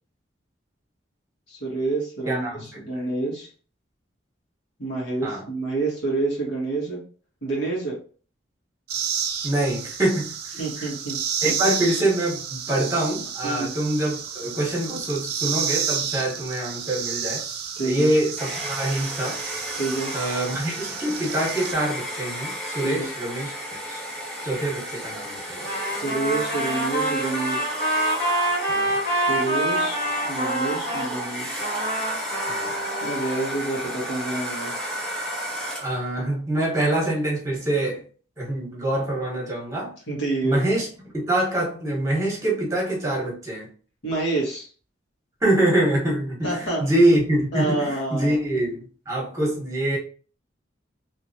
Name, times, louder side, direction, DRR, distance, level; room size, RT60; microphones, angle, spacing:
voice 1, 1.5-3.5 4.8-7.0 7.4-8.0 10.6-11.2 11.4-11.5 13.4-13.7 17.8-18.1 19.7-20.1 22.8-23.1 25.8-27.6 29.2-30.0 30.2-31.5 33.0-34.7 40.1-40.6 44.0-44.7 46.4-46.8 47.5-48.4, right 3 dB, 75° left, -4 dB, 1.6 m, -28 dB
voice 2, 2.2-3.0 5.2-5.4 9.4-10.9 11.4-17.4 17.8-19.4 20.1-23.5 23.9-24.0 24.4-25.6 28.7-29.0 32.5-32.7 35.8-38.0 38.4-39.9 40.4-40.9 41.1-43.7 45.4-50.0, right 1 dB, 15° right, -3 dB, 1.2 m, -25 dB
sound 1, 8.9-21.7, right 7 dB, 55° right, 0.6 m, -31 dB
Domestic sounds home sounds, 18.4-36.0, equal, 5° left, 1.2 m, -33 dB
Trumpet, 25.6-31.1 31.6-33.5, right 1 dB, 50° left, 1.2 m, -26 dB
3.1 x 3.0 x 2.7 m, 0.41 s
head